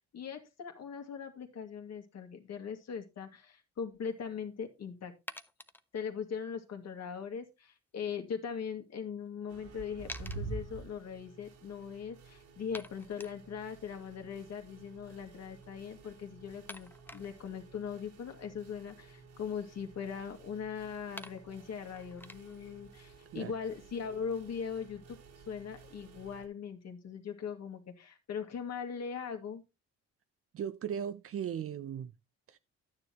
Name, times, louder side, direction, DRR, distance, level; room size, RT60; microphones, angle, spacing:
voice 1, 0.1-5.1 5.9-25.2 25.5-29.6, left 7 dB, 60° left, 2.2 m, -40 dB
sound 1, 4.1-4.2 5.3-5.8 9.0-9.1 9.3-9.4 10.1-10.4 11.4-11.5 11.8-11.9 12.7-13.4 15.6-15.7 16.7-17.5 19.0-20.1 20.9-21.0 21.2-22.7, left 1 dB, 5° left, 0.6 m, -48 dB
sound 2, 9.5-26.5, right 4 dB, 85° right, 3.7 m, -50 dB
voice 2, 30.5-32.1 32.5-32.6, right 8 dB, 50° right, 0.6 m, -37 dB
11.5 x 9.6 x 2.9 m
cardioid pair, 90°, 30 cm